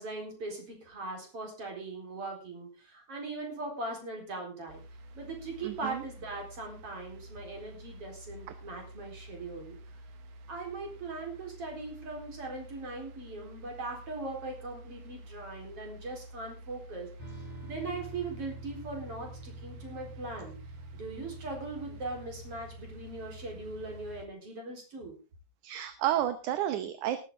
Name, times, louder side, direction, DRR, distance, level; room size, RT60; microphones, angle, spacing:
voice 1, 0.0-4.8 5.1-9.8 10.5-17.1 17.6-20.5 20.9-25.2, right 3 dB, 45° right, 2 dB, 5.0 m, -40 dB
sound 1, 4.7-24.3, right 1 dB, 65° right, 2.2 m, -49 dB
voice 2, 5.6-6.0 25.6-27.2, right 12 dB, 80° right, 10 dB, 2.3 m, -31 dB
sound 2, 17.2-24.2, right 3 dB, 10° left, 5.5 m, -48 dB
19.0 x 9.0 x 3.7 m, 0.32 s
omnidirectional pair, 3.5 m